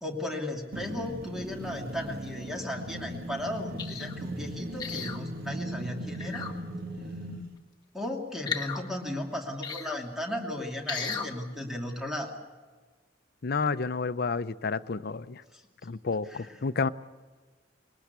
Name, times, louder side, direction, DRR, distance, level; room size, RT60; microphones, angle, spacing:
voice 1, 0.0-6.5 7.9-12.4 15.5-15.6 16.3-16.6, left 1 dB, ahead, 1 dB, 2.7 m, -35 dB
sound 1, 0.7-7.5, right 1 dB, 55° right, 1.6 m, -38 dB
sound 2, 3.8-4.1 4.8-5.2 6.1-6.5 8.4-8.8 9.6-10.0 10.9-11.3 11.9-12.0, left 5 dB, 25° left, 1.6 m, -34 dB
voice 2, 13.4-15.4 15.8-16.9, left 4 dB, 55° left, 13 dB, 0.6 m, -30 dB
21.5 x 19.5 x 8.2 m, 1.4 s
head